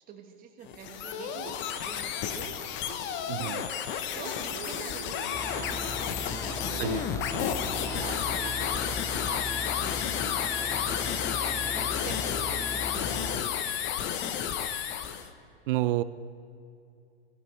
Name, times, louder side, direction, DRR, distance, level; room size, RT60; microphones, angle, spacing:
voice 1, 0.1-3.7 4.1-7.5 7.8-10.8 11.4-14.3, right 6 dB, 30° right, 2 dB, 1.6 m, -46 dB
sound 1, 0.6-15.3, left 9 dB, 40° left, 1.0 m, -32 dB
Male speech man speaking, 0.8-9.4, right 4 dB, 85° right, 2.6 m, -46 dB
voice 2, 3.3-3.6 6.8-7.0 15.7-16.0, right 16 dB, 60° right, 15 dB, 0.6 m, -28 dB
sound 2, 5.3-13.4, left 2 dB, 10° left, 0.4 m, -38 dB
17.0 x 15.0 x 3.4 m, 2.4 s
hypercardioid pair, 110°, 31 cm